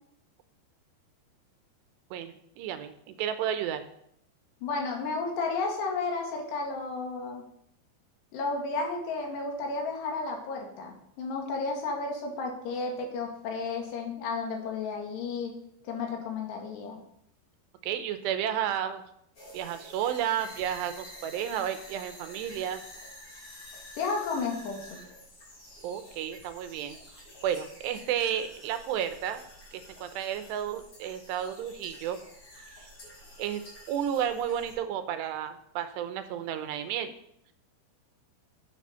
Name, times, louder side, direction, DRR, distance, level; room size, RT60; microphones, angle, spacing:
voice 1, 2.1-3.8 17.8-19.0 19.5-22.8 25.8-27.0 27.4-29.4 29.7-32.2 32.8-32.9 33.4-33.6 33.9-37.1, right 9 dB, 80° right, 9 dB, 3.0 m, -32 dB
voice 2, 4.6-7.5 8.3-17.0 24.0-25.0, left 4 dB, 75° left, 1 dB, 4.1 m, -33 dB
sound 1, 19.3-34.7, left 1 dB, 30° left, 5.3 m, -49 dB
11.0 x 7.0 x 5.7 m, 0.73 s
omnidirectional pair, 4.9 m